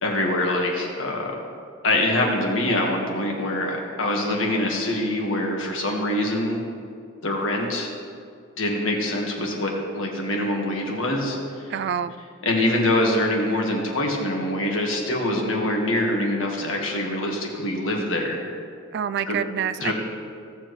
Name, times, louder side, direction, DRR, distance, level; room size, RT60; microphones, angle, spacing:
voice 1, 0.0-1.3 1.8-6.6 7.2-7.9 8.6-11.4 12.4-18.4 19.3-19.4 19.8-19.9, left 1 dB, 70° left, 0 dB, 1.7 m, -24 dB
voice 2, 11.7-12.1 18.9-19.9, right 8 dB, 55° right, 14 dB, 0.3 m, -27 dB
16.0 x 7.1 x 3.2 m, 2.3 s
head